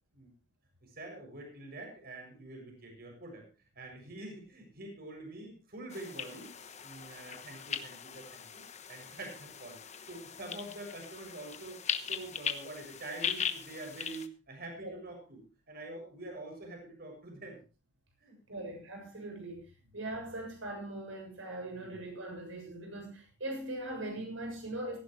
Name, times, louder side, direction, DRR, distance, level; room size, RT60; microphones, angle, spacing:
voice 1, 0.8-3.5 3.8-8.6 8.9-17.6 18.2-18.6 21.7-22.0, right 2 dB, 50° right, 3 dB, 6.9 m, -46 dB
sound 1, 5.9-14.3, left 7 dB, 35° left, 1.1 m, -39 dB
voice 2, 18.5-19.7 19.9-25.0, right 1 dB, 75° right, 3 dB, 7.1 m, -40 dB
17.0 x 15.0 x 3.1 m, 0.32 s
head